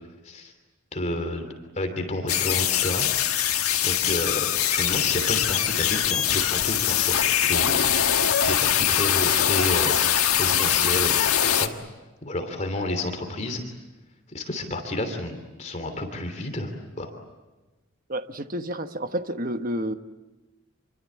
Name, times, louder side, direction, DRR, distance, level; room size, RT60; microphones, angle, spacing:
voice 1, 0.9-3.1 3.8-7.8 8.4-10.0 10.3-11.7 12.2-13.6 14.3-16.7 17.0-17.1, left 1 dB, 30° left, 5 dB, 3.1 m, -30 dB
sound 1, 2.3-11.7, left 10 dB, 85° left, 1.6 m, -22 dB
voice 2, 18.1-19.9, right 1 dB, 40° right, 8 dB, 1.3 m, -30 dB
27.5 x 23.5 x 8.7 m, 1.1 s
head